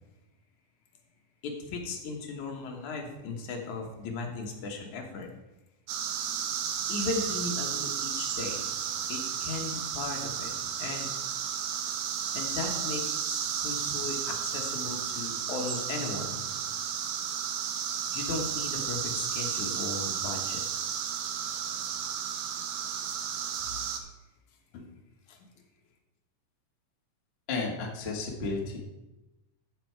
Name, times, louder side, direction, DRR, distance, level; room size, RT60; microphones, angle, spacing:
voice 1, 1.4-5.3 6.9-8.7 9.1-11.1 12.3-16.5 18.1-20.6 23.6-23.8 24.7-24.9 25.3-25.4, left 3 dB, 65° left, 2 dB, 2.6 m, -37 dB
sound 1, 5.9-24.0, right 8 dB, 80° right, 2.4 m, -33 dB
voice 2, 27.5-28.8, left 3 dB, 40° left, -1 dB, 0.9 m, -32 dB
14.0 x 6.5 x 4.6 m, 1.0 s
omnidirectional pair, 3.9 m